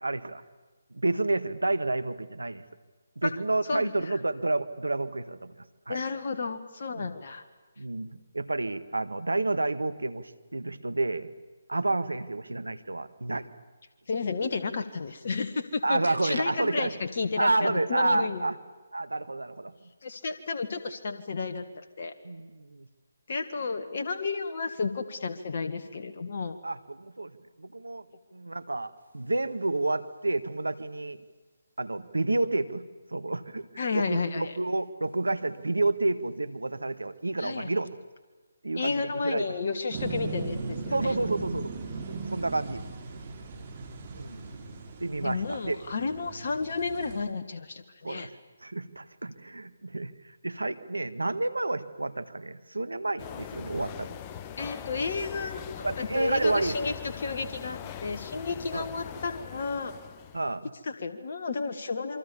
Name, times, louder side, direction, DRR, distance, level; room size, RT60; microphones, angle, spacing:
voice 1, 0.0-0.4 0.9-2.6 3.2-5.5 5.9-6.0 7.0-7.1 7.8-11.3 11.7-13.5 15.8-16.9 17.3-18.5 18.9-19.7 22.2-22.9 26.6-27.3 27.6-28.1 28.3-31.2 31.8-32.8 33.1-33.7 33.9-37.9 38.6-39.5 40.9-41.7 42.1-42.8 44.1-44.5 45.0-45.8 48.0-48.3 48.6-50.1 50.4-54.2 55.8-56.8 58.7-58.9 60.3-60.7, right 2 dB, 85° right, 13 dB, 1.5 m, -30 dB
voice 2, 3.7-4.2 5.9-7.4 14.1-18.4 20.0-22.1 23.3-26.6 33.8-34.5 37.4-37.7 38.8-41.1 45.2-48.3 54.6-59.9 60.8-62.2, left 4 dB, 50° left, 6 dB, 1.7 m, -32 dB
sound 1, 39.9-47.2, right 4 dB, 35° right, 5.0 m, -38 dB
sound 2, 53.2-60.6, left 9 dB, 25° left, 1.1 m, -41 dB
28.0 x 24.0 x 7.2 m, 1.3 s
figure-of-eight pair, 150°, 0 cm